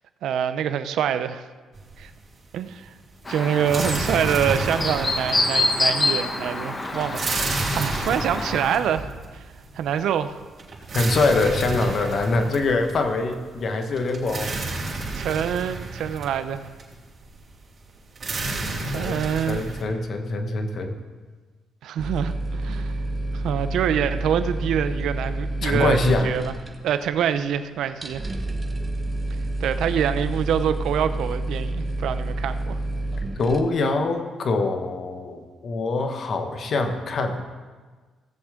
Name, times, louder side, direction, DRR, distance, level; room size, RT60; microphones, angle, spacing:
voice 1, 0.2-1.4 2.0-2.1 2.5-2.9 3.3-9.1 9.7-10.4 15.1-16.6 18.9-19.6 21.8-22.9 23.3-26.5 26.8-28.2 29.6-32.8, right 9 dB, 75° right, 11 dB, 0.6 m, -25 dB
sound 1, 1.7-2.4 2.6-19.8, right 2 dB, 45° right, 3.4 m, -31 dB
Chirp tweet, 3.3-8.8, left 2 dB, 25° left, 1.1 m, -26 dB
voice 2, 10.9-14.6 18.9-21.0 25.6-26.3 33.4-37.5, left 3 dB, 55° left, 6 dB, 1.3 m, -24 dB
sound 2, 22.0-33.6, right 1 dB, 20° right, 1.2 m, -29 dB
16.5 x 7.4 x 3.7 m, 1.4 s
cardioid pair, 90°, 0 cm